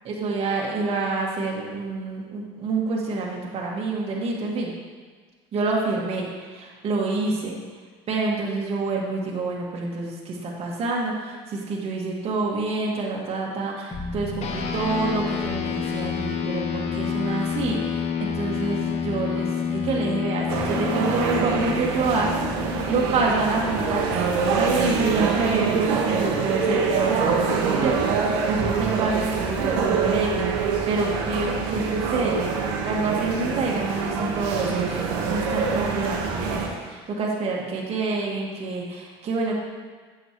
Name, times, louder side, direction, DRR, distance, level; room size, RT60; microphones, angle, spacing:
voice 1, 0.1-4.7 5.5-7.5 8.1-28.0 28.2-32.4 32.8-39.5, right 3 dB, 45° right, -3 dB, 1.9 m, -27 dB
sound 1, 13.9-18.1, left 3 dB, 15° left, 1.8 m, -39 dB
sound 2, 14.4-24.1, left 7 dB, 50° left, 0.9 m, -29 dB
sound 3, 20.5-36.7, right 5 dB, 80° right, 1.2 m, -25 dB
8.9 x 7.5 x 3.1 m, 1.5 s
supercardioid pair, 100°, 14 cm